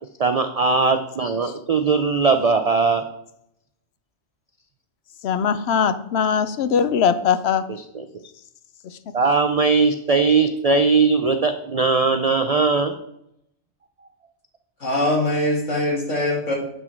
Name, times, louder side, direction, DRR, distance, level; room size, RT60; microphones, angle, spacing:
voice 1, 0.2-3.0 7.9-8.0 9.1-12.9, right 4 dB, 60° right, 7 dB, 0.4 m, -19 dB
voice 2, 5.2-7.6 8.8-9.0, left 7 dB, 65° left, 12 dB, 0.8 m, -21 dB
voice 3, 14.8-16.5, left 1 dB, 85° left, -2 dB, 2.6 m, -22 dB
7.8 x 6.2 x 4.4 m, 0.77 s
omnidirectional pair, 1.2 m